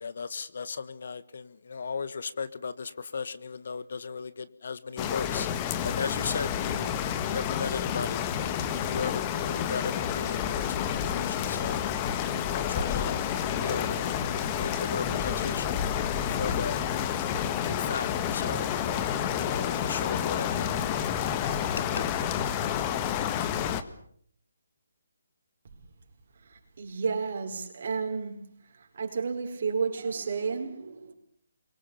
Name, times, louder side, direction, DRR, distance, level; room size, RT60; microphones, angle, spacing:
voice 1, 0.0-5.5 5.8-6.9 7.2-8.3 8.9-11.8 12.4-13.2 13.5-14.2 14.5-15.8 16.4-16.8 17.3-18.7 19.2-20.8, left 5 dB, 60° left, 1.5 m, -36 dB
sound 1, 5.0-23.8, left 9 dB, 25° left, 1.5 m, -29 dB
voice 2, 26.5-28.4 28.9-31.1, right 5 dB, 55° right, 4.8 m, -31 dB
27.0 x 24.0 x 7.0 m
figure-of-eight pair, 150°, 0 cm